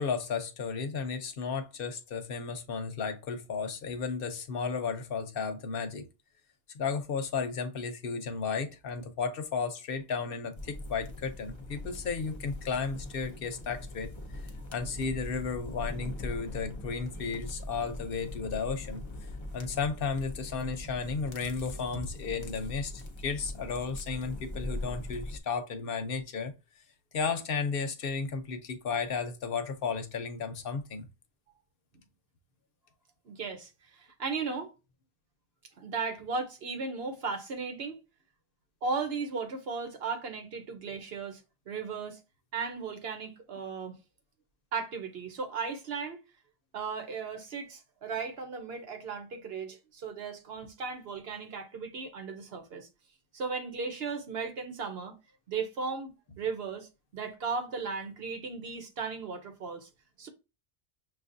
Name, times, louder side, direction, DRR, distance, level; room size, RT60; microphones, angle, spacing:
voice 1, 0.0-6.0 6.7-14.1 14.7-19.0 19.5-26.5 27.1-31.0, left 5 dB, 65° left, 0.8 m, -34 dB
sound 1, 10.6-25.4, left 1 dB, 35° left, 0.6 m, -41 dB
voice 2, 33.3-33.7 34.0-34.7 35.8-38.0 38.8-42.2 42.5-44.0 44.7-46.2 46.7-52.9 53.3-55.1 55.5-59.9 60.2-60.3, right 5 dB, 70° right, 1.1 m, -36 dB
6.1 x 2.4 x 2.5 m
omnidirectional pair, 1.1 m